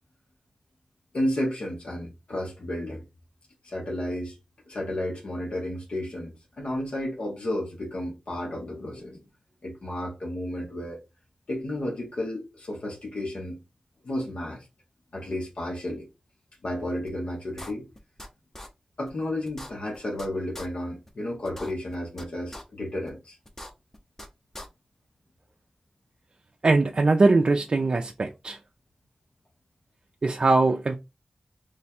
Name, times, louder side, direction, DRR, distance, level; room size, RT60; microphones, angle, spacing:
voice 1, 1.1-3.0 3.6-4.4 4.7-9.2 9.6-11.0 11.5-13.6 14.0-14.7 15.1-16.1 16.6-17.9 19.0-23.4, left 1 dB, 70° left, 1.1 m, -32 dB
sound 1, 17.1-17.2 17.6-18.3 18.5-18.7 19.1-19.2 19.4-20.3 20.5-20.7 21.1-21.2 21.4-22.2 22.5-22.6 23.1-23.2 23.4-24.3 24.5-24.7, left 1 dB, 20° left, 0.8 m, -41 dB
voice 2, 26.6-28.6 30.2-31.0, right 3 dB, 50° right, 0.4 m, -21 dB
3.2 x 2.3 x 4.2 m
wide cardioid pair, 70°, 2 cm